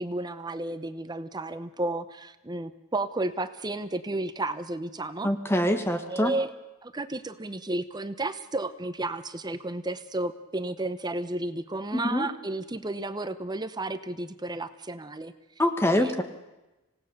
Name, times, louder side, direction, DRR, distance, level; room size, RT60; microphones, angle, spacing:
voice 1, 0.0-5.3 6.1-6.5 6.8-15.3 15.9-16.2, right 2 dB, 20° right, 12 dB, 0.8 m, -32 dB
voice 2, 5.2-6.3 11.9-12.3 15.6-16.2, left 1 dB, 10° left, 8 dB, 1.1 m, -24 dB
26.0 x 18.0 x 6.6 m, 1.0 s
head